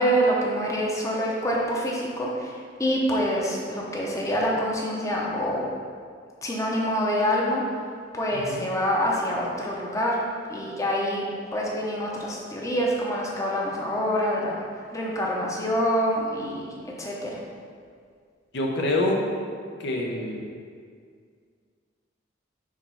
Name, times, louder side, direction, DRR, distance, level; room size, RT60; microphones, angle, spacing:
voice 1, 0.0-5.6 6.4-7.6 8.1-10.2 10.5-14.5 14.9-17.4, equal, 15° left, -3 dB, 0.8 m, -26 dB
voice 2, 8.3-8.7 18.5-19.3 19.8-20.4, left 1 dB, 60° left, 0 dB, 0.8 m, -26 dB
4.8 x 4.4 x 5.6 m, 2.1 s
head